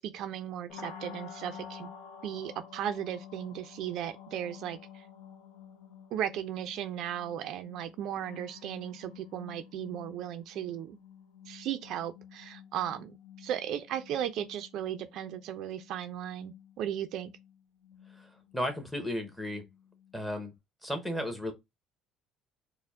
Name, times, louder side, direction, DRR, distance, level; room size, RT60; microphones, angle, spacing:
voice 1, 0.0-1.9 2.2-5.0 6.1-11.0 11.5-17.3, right 10 dB, 55° right, 0.4 m, -36 dB
sound 1, 0.7-20.5, left 8 dB, 70° left, 0.7 m, -51 dB
voice 2, 18.1-19.6 20.1-20.5 20.8-21.5, left 1 dB, 5° left, 0.8 m, -34 dB
4.4 x 2.1 x 3.5 m
cardioid pair, 160°, 0 cm